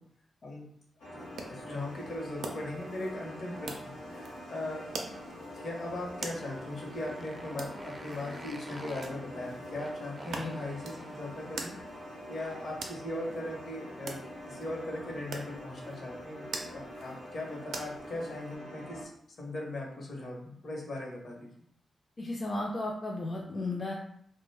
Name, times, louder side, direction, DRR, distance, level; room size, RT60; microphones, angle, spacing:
sound 1, 1.0-19.0, equal, 90° left, 0.9 m, -45 dB
voice 1, 1.1-4.8 5.5-11.7 12.3-14.2 14.5-16.5 16.7-19.1 19.4-21.5, left 1 dB, 65° left, 0 dB, 0.8 m, -39 dB
sound 2, 1.2-18.6, right 3 dB, 85° right, 0.4 m, -46 dB
Motorcycle, 6.4-12.8, right 1 dB, 20° right, 0.4 m, -49 dB
voice 2, 22.2-23.9, left 2 dB, 45° left, -1 dB, 0.4 m, -34 dB
2.4 x 2.1 x 3.2 m, 0.68 s
cardioid pair, 60°, 0 cm